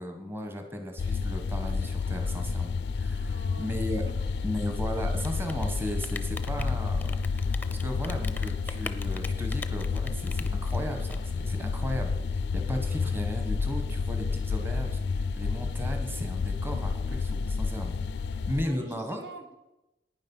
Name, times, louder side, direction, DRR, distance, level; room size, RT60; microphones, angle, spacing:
voice 1, 0.0-4.0 4.4-18.0 18.5-19.2, equal, 15° right, 4 dB, 1.3 m, -36 dB
sound 1, 1.0-18.6, left 4 dB, 70° left, 0.4 m, -30 dB
voice 2, 3.2-3.7 4.1-4.6 12.9-13.1 18.0-19.5, right 2 dB, 75° right, 5 dB, 1.5 m, -48 dB
Rain, 5.1-11.9, left 3 dB, 10° left, 0.6 m, -41 dB
10.5 x 9.6 x 5.6 m, 0.96 s
head